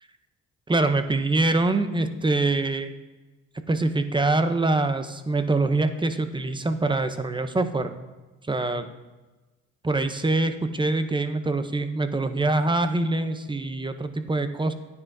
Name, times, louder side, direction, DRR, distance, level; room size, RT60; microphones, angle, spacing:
voice 1, 0.7-2.9 3.7-7.9 8.5-8.9 9.8-14.7, right 2 dB, 15° right, 9 dB, 0.7 m, -24 dB
10.0 x 9.5 x 2.7 m, 1.2 s
cardioid pair, 90°, 30 cm